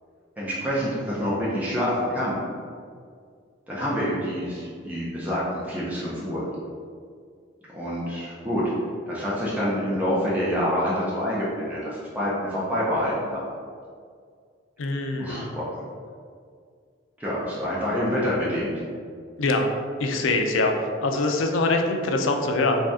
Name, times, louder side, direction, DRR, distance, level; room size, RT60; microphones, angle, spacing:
voice 1, 0.4-2.4 3.7-6.4 7.7-8.6 9.1-13.4 15.1-15.9 17.2-18.7, equal, 10° right, -8 dB, 0.5 m, -27 dB
voice 2, 14.8-15.6 19.4-19.7 20.0-20.7 21.0-22.8, left 2 dB, 75° left, 4 dB, 0.4 m, -23 dB
3.2 x 2.7 x 3.5 m, 2.1 s
head